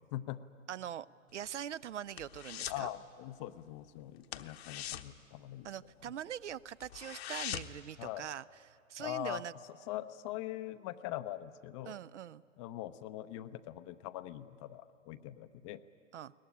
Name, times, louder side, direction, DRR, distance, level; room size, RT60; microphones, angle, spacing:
voice 1, 0.1-0.4 2.7-5.7 6.1-6.2 8.0-8.3 9.0-9.4 9.9-12.0 12.6-15.8, left 14 dB, 25° left, 12 dB, 0.6 m, -42 dB
voice 2, 0.7-1.1 1.3-2.9 5.6-8.4 8.7-9.5 11.9-12.4 16.1-16.3, right 10 dB, 60° right, 19 dB, 0.6 m, -42 dB
sound 1, 1.3-2.9 3.2-3.5 3.7-3.9 4.2-6.1 6.5-6.6 6.8-7.9 8.3-8.4, left 11 dB, 50° left, 1.1 m, -42 dB
22.0 x 19.0 x 10.0 m, 2.4 s
figure-of-eight pair, 115°, 39 cm